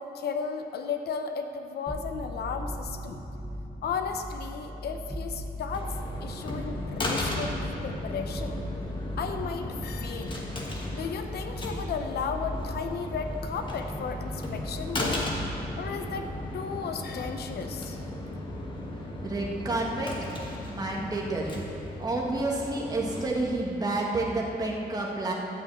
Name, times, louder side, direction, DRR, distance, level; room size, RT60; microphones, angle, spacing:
voice 1, 0.0-3.2 3.8-6.0 6.2-8.6 9.2-10.4 10.9-15.4 15.8-18.0, left 6 dB, 80° left, 6 dB, 0.7 m, -34 dB
sound 1, 1.9-19.3 19.6-20.4, equal, 5° left, 1.0 m, -39 dB
sound 2, 5.7-23.3, left 1 dB, 30° left, 1.4 m, -36 dB
voice 2, 19.2-20.3 20.7-21.5 22.0-25.3, right 2 dB, 25° right, -2 dB, 1.5 m, -29 dB
12.5 x 5.5 x 8.0 m, 2.8 s
wide cardioid pair, 175°, 16 cm